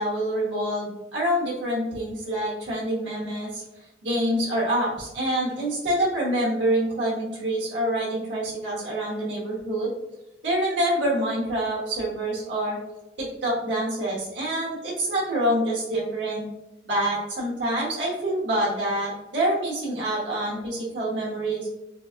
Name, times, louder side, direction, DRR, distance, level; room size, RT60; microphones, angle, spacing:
voice 1, 0.0-3.6 4.0-9.9 10.4-12.8 13.2-16.4 16.9-21.7, right 1 dB, 80° right, -5 dB, 1.0 m, -26 dB
3.9 x 2.4 x 2.4 m, 0.95 s
head